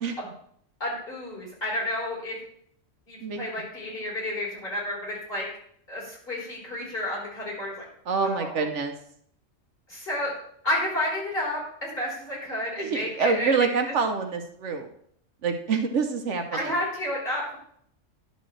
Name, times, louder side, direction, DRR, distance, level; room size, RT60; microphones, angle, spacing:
voice 1, 0.8-2.4 3.1-5.5 5.9-7.7 8.2-8.7 9.9-10.3 10.6-13.7 16.5-17.6, left 1 dB, 45° left, -7 dB, 4.4 m, -31 dB
voice 2, 8.1-8.9 12.8-14.9 15.4-16.4, right 5 dB, 65° right, 5 dB, 1.1 m, -26 dB
11.0 x 6.8 x 3.2 m, 0.67 s
omnidirectional pair, 1.3 m